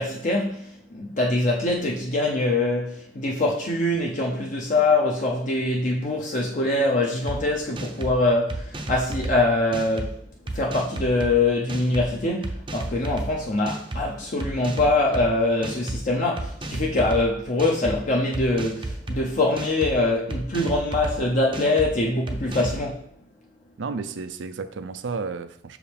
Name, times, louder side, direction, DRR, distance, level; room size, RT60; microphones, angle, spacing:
voice 1, 0.0-10.2 10.5-23.0, left 2 dB, 45° left, 0.7 m, -23 dB
sound 1, 7.3-7.4 7.8-8.1 8.5-9.3 9.7-10.1 10.5-11.3 11.7-12.1 12.4-13.3 13.7-14.0 14.4-15.2 15.6-16.0 16.4-17.2 17.6-18.0 18.3-19.2 19.6-19.9 20.3-21.1 21.5-21.9 22.3-22.8, right 2 dB, 25° right, 0.6 m, -32 dB
voice 2, 23.8-25.8, right 4 dB, 70° right, 0.5 m, -32 dB
6.1 x 4.8 x 3.4 m
head